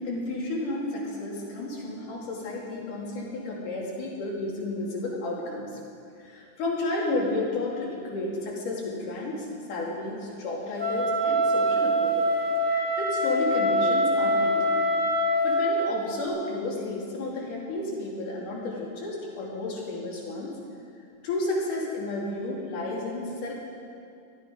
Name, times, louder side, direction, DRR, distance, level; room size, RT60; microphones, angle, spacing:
voice 1, 0.0-5.8 6.2-12.4 12.6-14.8 15.2-20.6 21.2-23.5, left 2 dB, 65° left, -4 dB, 4.0 m, -32 dB
Wind instrument woodwind instrument, 10.8-15.8, equal, 10° left, 2.0 m, -24 dB
17.5 x 12.5 x 5.0 m, 2.4 s
omnidirectional pair, 4.0 m